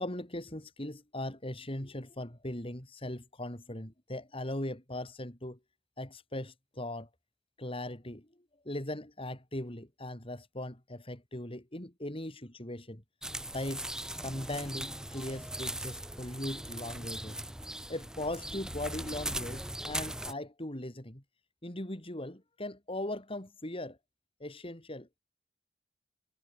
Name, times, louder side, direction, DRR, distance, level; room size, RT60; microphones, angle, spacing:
voice 1, 0.0-5.6 6.0-7.1 7.6-8.3 8.6-13.0 13.5-13.8 14.2-17.4 17.9-21.2 21.6-24.0 24.4-25.2, left 1 dB, 30° left, 4.1 m, -39 dB
sound 1, 13.2-20.3, right 1 dB, 5° right, 0.7 m, -39 dB
head